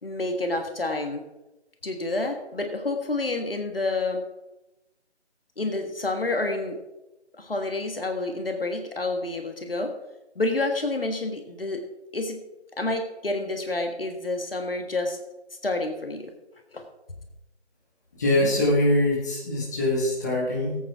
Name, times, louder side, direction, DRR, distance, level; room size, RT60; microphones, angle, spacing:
voice 1, 0.0-1.3 1.8-4.2 5.6-6.8 7.4-10.0 10.3-11.8 12.1-12.4 12.8-15.2 15.6-16.3 16.7-16.8, left 2 dB, 55° left, 5 dB, 1.7 m, -28 dB
voice 2, 18.2-20.8, left 1 dB, 15° left, -3 dB, 1.8 m, -23 dB
19.5 x 8.8 x 3.6 m, 0.98 s
figure-of-eight pair, 165°, 34 cm